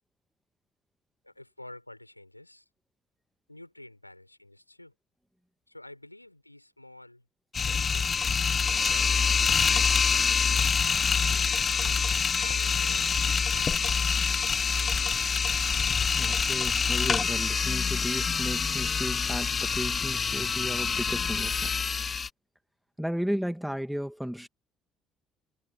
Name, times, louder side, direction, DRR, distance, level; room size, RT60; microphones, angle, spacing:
voice 1, 1.2-2.6 3.5-4.9 5.7-7.2 7.6-8.1 8.5-10.5 11.5-13.1 13.5-15.1, left 1 dB, 90° left, 5.9 m, -49 dB
sound 1, 7.5-22.3, left 6 dB, 35° left, 0.7 m, -26 dB
voice 2, 16.1-21.7 23.0-24.5, equal, ahead, 2.6 m, -34 dB
figure-of-eight pair, 50°, 0 cm